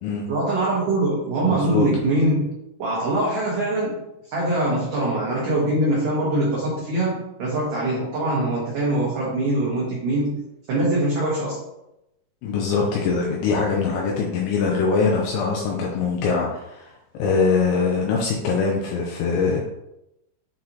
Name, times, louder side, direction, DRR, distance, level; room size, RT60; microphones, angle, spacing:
voice 1, 0.3-2.5 2.8-10.4 10.7-11.6, right 1 dB, 85° right, -6 dB, 1.8 m, -23 dB
voice 2, 1.5-1.9 12.4-16.9 17.2-19.6, left 4 dB, 80° left, -1 dB, 2.6 m, -22 dB
8.5 x 3.9 x 2.9 m, 0.87 s
omnidirectional pair, 5.9 m